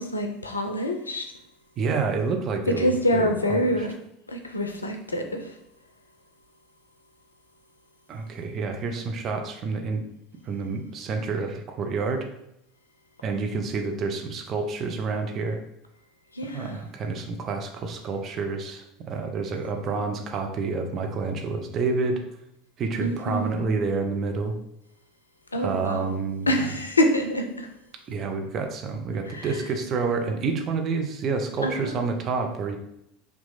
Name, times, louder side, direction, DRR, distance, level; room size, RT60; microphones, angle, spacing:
voice 1, 0.0-1.3 2.7-4.0 4.3-5.6 16.3-16.8 23.0-23.5 25.5-26.1 26.5-27.7 29.3-29.7 31.6-32.0, equal, 85° left, 4 dB, 0.4 m, -26 dB
voice 2, 1.8-3.7 8.1-10.0 10.4-12.3 13.2-15.6 16.5-22.2 22.8-24.6 25.6-26.5 28.1-32.8, right 4 dB, 40° right, 4 dB, 0.6 m, -28 dB
2.9 x 2.3 x 3.9 m, 0.81 s
figure-of-eight pair, 75°, 0 cm